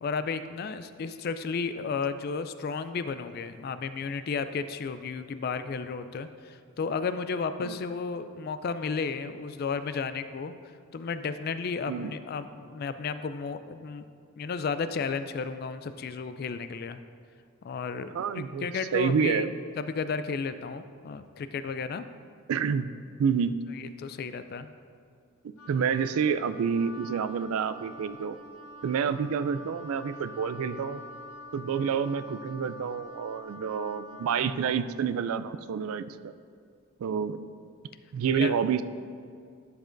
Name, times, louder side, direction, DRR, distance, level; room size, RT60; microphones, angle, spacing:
voice 1, 0.0-10.5 10.9-14.0 14.4-17.0 17.6-19.5 19.8-22.0 23.7-24.7 38.3-38.5, left 5 dB, 45° left, 11 dB, 0.3 m, -33 dB
voice 2, 18.1-18.7 18.9-19.5 22.5-22.9 23.2-23.6 25.4-28.4 28.8-31.0 31.5-36.3 37.0-37.5 38.1-38.8, right 6 dB, 75° right, 12 dB, 0.3 m, -28 dB
Wind instrument woodwind instrument, 25.6-34.7, left 1 dB, 75° left, 0.7 m, -46 dB
11.5 x 7.2 x 2.6 m, 2.3 s
head